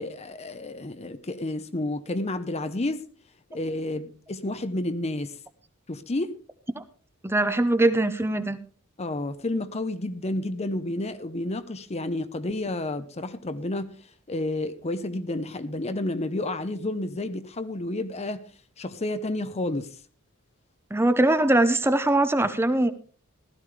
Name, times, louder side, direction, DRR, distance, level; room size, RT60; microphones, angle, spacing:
voice 1, 0.0-3.1 3.5-5.4 5.9-6.4 9.0-13.9 14.3-18.4 18.8-19.9, left 2 dB, 30° left, 0.8 m, -30 dB
voice 2, 7.2-8.6 20.9-22.9, right 2 dB, 10° right, 0.8 m, -22 dB
15.5 x 13.0 x 3.4 m
head